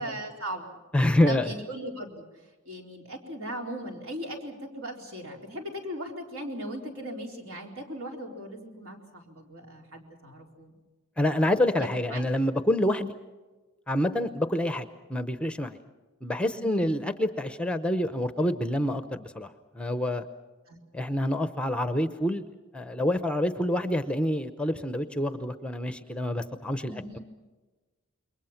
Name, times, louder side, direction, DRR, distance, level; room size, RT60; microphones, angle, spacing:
voice 1, 0.0-0.8 1.3-2.2 2.7-10.8 11.8-12.3 16.5-17.0 20.7-20.8 26.8-27.2, right 1 dB, 65° right, 1 dB, 4.3 m, -38 dB
voice 2, 0.9-1.5 11.2-13.1 13.9-15.8 16.2-20.3 20.9-22.4 22.7-27.2, left 1 dB, 5° left, 10 dB, 0.8 m, -27 dB
28.0 x 22.5 x 5.9 m, 1.2 s
head